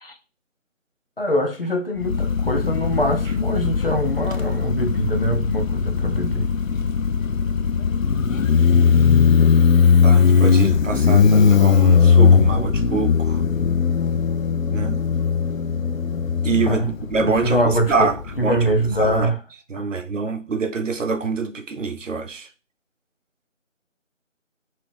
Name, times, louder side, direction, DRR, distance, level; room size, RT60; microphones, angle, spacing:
voice 1, 1.2-6.5 16.7-16.9 17.2-18.1 18.4-19.4 19.8-19.9, equal, 45° left, 0.7 m, -23 dB
Motorcycle, 2.0-19.2, left 6 dB, 90° left, 0.6 m, -18 dB
voice 2, 10.0-13.4 14.7-15.0 16.4-18.7 19.0-19.3 19.7-22.5, right 4 dB, 70° right, 0.6 m, -25 dB
3.1 x 2.9 x 3.2 m
figure-of-eight pair, 175°, 39 cm